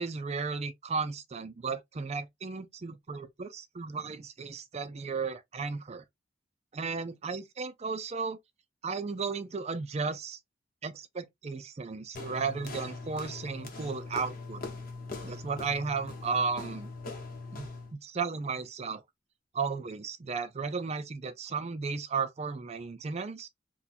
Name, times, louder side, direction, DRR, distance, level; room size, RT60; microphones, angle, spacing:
voice 1, 0.0-6.0 6.7-8.4 8.8-10.4 10.8-14.6 15.2-16.9 17.5-19.0 19.5-23.5, right 5 dB, 35° right, 0.5 m, -34 dB
sound 1, 12.1-17.9, left 3 dB, 50° left, 0.9 m, -41 dB
4.2 x 2.2 x 2.4 m
head